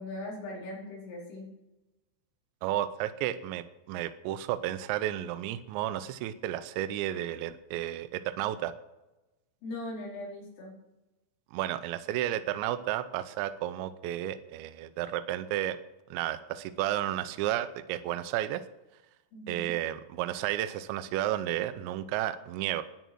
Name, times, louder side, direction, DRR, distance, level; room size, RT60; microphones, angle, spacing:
voice 1, 0.0-1.5 9.6-10.7 19.3-19.8, left 2 dB, 70° left, -4 dB, 7.2 m, -40 dB
voice 2, 2.6-8.7 11.5-15.8 16.1-18.6 19.5-22.8, right 13 dB, 90° right, 11 dB, 2.6 m, -32 dB
13.0 x 10.5 x 6.2 m, 1.0 s
omnidirectional pair, 6.0 m